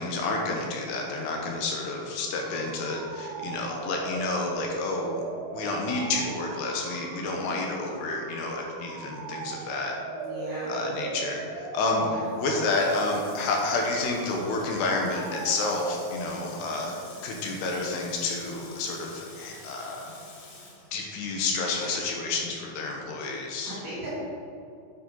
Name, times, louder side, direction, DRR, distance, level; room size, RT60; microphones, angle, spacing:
voice 1, 0.0-5.2 5.5-10.0 10.7-16.9 17.2-20.2 20.9-23.8, left 3 dB, 75° left, 0 dB, 2.9 m, -30 dB
sound 1, 2.1-16.7, right 5 dB, 80° right, 2.9 m, -40 dB
voice 2, 10.1-10.8 12.0-12.3 21.7-22.1 23.6-24.1, right 1 dB, 50° right, -9 dB, 3.6 m, -38 dB
Water tap faucet / Sink (filling or washing), 12.2-22.0 22.3-22.4, left 2 dB, 55° left, 2.8 m, -49 dB
9.7 x 8.8 x 3.9 m, 2.5 s
omnidirectional pair, 5.4 m